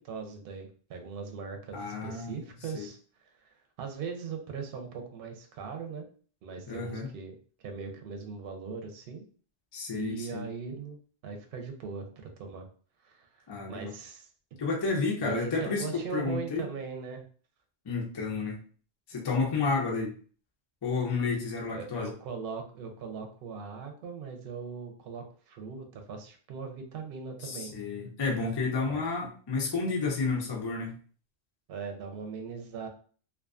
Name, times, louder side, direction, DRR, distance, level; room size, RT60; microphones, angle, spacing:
voice 1, 0.0-6.1 6.4-7.3 7.6-9.2 9.9-12.0 12.4-12.7 13.0-14.3 15.2-17.2 21.7-27.7 28.9-29.0 31.7-32.9, right 5 dB, 65° right, 4 dB, 0.7 m, -40 dB
voice 2, 1.7-2.4 2.7-2.9 6.7-7.1 9.7-10.5 13.5-13.9 14.6-15.8 16.1-16.6 17.9-18.6 19.1-20.1 20.8-22.1 27.4-31.0, left 4 dB, 35° left, 0 dB, 0.4 m, -31 dB
2.4 x 2.3 x 2.3 m, 0.42 s
omnidirectional pair, 1.1 m